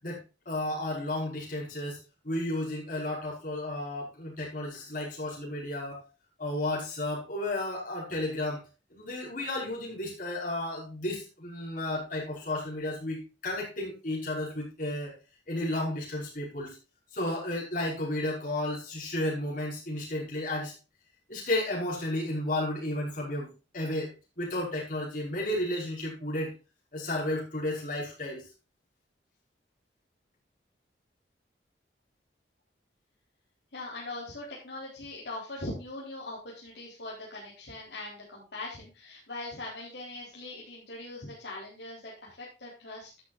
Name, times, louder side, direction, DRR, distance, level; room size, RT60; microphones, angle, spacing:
voice 1, 0.0-2.0 2.2-6.0 6.4-8.6 8.9-15.1 15.5-16.8 17.1-20.7 21.3-26.5 26.9-28.4, left 1 dB, 50° left, -4 dB, 5.4 m, -33 dB
voice 2, 33.7-43.1, left 2 dB, 65° left, -6 dB, 4.3 m, -41 dB
12.0 x 10.5 x 2.6 m, 0.30 s
head